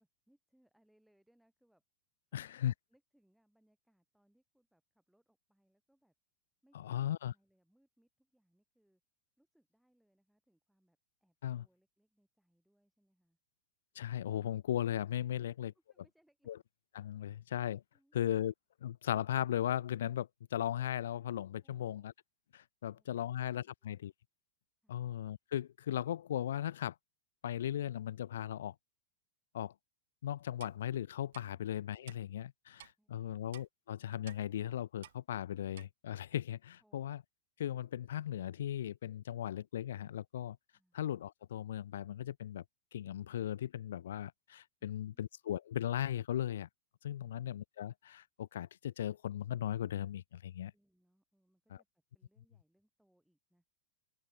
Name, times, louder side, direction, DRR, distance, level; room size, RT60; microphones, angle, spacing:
voice 1, 0.0-1.8 2.3-6.1 6.6-9.0 9.4-13.4 15.4-16.5 17.3-17.5 17.9-18.4 21.6-22.1 22.8-24.0 24.8-25.1 32.7-33.5 36.8-37.1 40.7-41.0 47.2-47.5 50.7-51.9 52.1-53.7, right 1 dB, ahead, 6.1 m, -75 dB
voice 2, 2.3-2.7 6.7-7.3 11.4-11.7 14.0-15.7 16.5-16.6 16.9-17.8 18.1-18.5 18.8-22.1 22.5-24.1 24.9-27.0 27.4-28.7 29.5-29.7 30.2-37.2 37.6-40.6 40.9-42.6 42.9-46.7 47.0-50.7 51.7-51.8, left 11 dB, 60° left, 0.3 m, -37 dB
Clock, 30.6-30.8 31.3-31.4 32.1-32.2 32.8-32.9 33.5-33.7 34.3-34.4 35.0-35.2 35.7-35.9, right 13 dB, 60° right, 0.9 m, -54 dB
open air
figure-of-eight pair, 90°, 0 cm